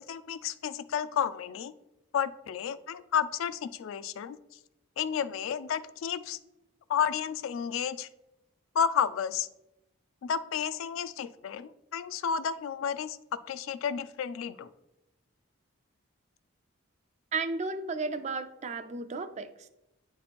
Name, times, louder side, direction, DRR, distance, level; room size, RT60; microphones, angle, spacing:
voice 1, 0.0-1.7 2.1-4.4 5.0-6.4 6.9-8.1 8.7-9.5 10.2-13.2 13.5-14.7, left 7 dB, 70° left, 14 dB, 0.3 m, -31 dB
voice 2, 17.3-19.7, right 4 dB, 30° right, 10 dB, 0.3 m, -34 dB
9.1 x 3.1 x 4.2 m, 0.92 s
head